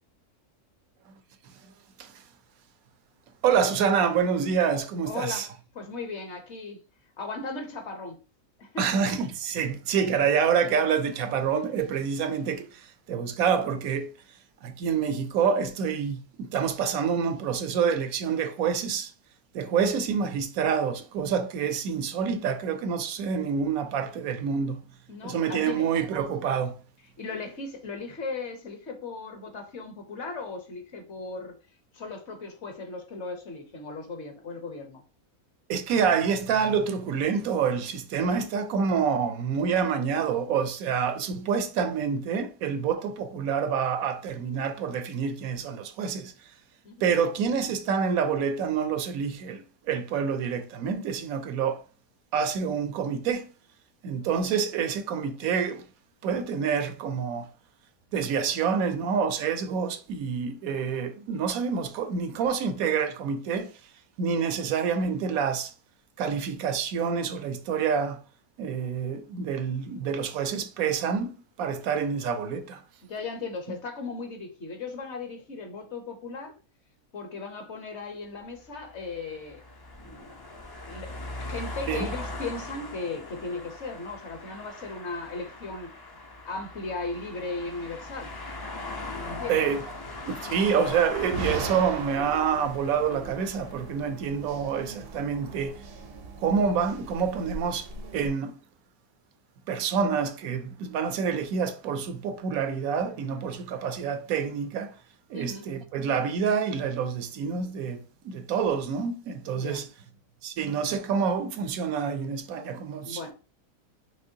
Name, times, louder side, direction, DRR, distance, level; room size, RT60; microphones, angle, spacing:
voice 1, 3.4-5.5 8.8-14.1 14.6-19.1 19.5-24.8 25.2-26.8 35.7-46.3 47.0-51.8 52.3-53.5 54.0-55.9 56.2-57.5 58.1-63.7 64.2-65.7 66.2-68.2 68.6-72.8 81.9-82.1 89.5-89.8 90.2-95.8 96.4-98.6 99.7-105.0 105.3-109.9 110.4-113.3, right 6 dB, 75° right, 1.1 m, -27 dB
voice 2, 5.1-5.5 5.7-6.8 7.2-8.2 8.6-9.0 25.1-25.9 27.2-31.5 31.9-35.0 46.8-47.1 73.1-76.6 77.1-79.6 79.9-80.3 80.9-85.9 86.5-88.3 89.2-89.6 105.3-105.7 109.5-109.9 113.0-113.3, left 3 dB, 55° left, 1.2 m, -37 dB
sound 1, 78.7-94.1, left 2 dB, 30° left, 0.4 m, -40 dB
sound 2, 90.5-98.3, right 3 dB, 50° right, 0.8 m, -39 dB
5.4 x 3.1 x 2.7 m
omnidirectional pair, 1.5 m